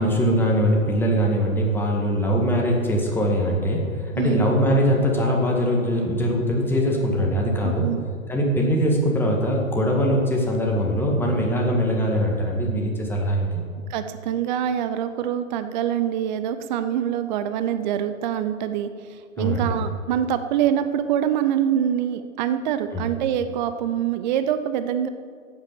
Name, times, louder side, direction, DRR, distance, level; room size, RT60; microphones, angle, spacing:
voice 1, 0.0-7.8 8.3-13.5 19.4-19.7 22.9-23.1, equal, 5° left, -1 dB, 2.0 m, -22 dB
voice 2, 7.6-8.0 13.9-25.1, right 10 dB, 35° right, 10 dB, 0.6 m, -25 dB
11.5 x 8.9 x 7.0 m, 2.1 s
figure-of-eight pair, 120°, 41 cm